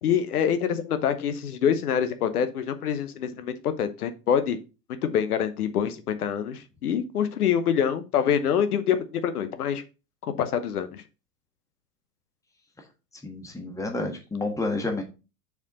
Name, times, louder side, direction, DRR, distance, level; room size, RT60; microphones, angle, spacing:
voice 1, 0.0-4.6 5.0-9.8 10.4-11.0, left 8 dB, 65° left, 10 dB, 1.0 m, -25 dB
voice 2, 13.2-15.0, left 2 dB, 5° left, 3 dB, 1.4 m, -30 dB
7.1 x 4.6 x 3.9 m, 0.30 s
figure-of-eight pair, 95°, 48 cm